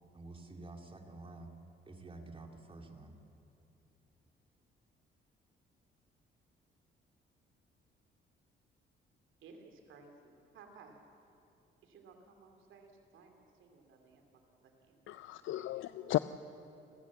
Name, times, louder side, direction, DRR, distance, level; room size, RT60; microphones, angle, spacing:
voice 1, 0.1-1.5 1.9-3.1, right 2 dB, 25° right, 4 dB, 2.6 m, -49 dB
voice 2, 9.4-11.1 11.4-11.5 11.8-15.3 15.5-15.7, right 4 dB, 80° right, 4 dB, 2.8 m, -58 dB
voice 3, 15.1-16.2, left 15 dB, 75° left, 13 dB, 0.5 m, -34 dB
29.0 x 14.5 x 7.3 m, 2.7 s
cardioid pair, 90°, 20 cm